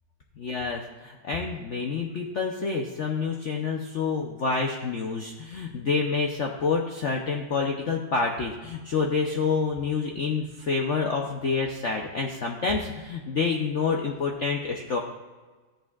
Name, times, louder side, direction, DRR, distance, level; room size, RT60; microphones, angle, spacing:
voice 1, 0.4-15.0, left 4 dB, 75° left, 1 dB, 0.6 m, -28 dB
13.5 x 7.8 x 2.4 m, 1.3 s
omnidirectional pair, 2.2 m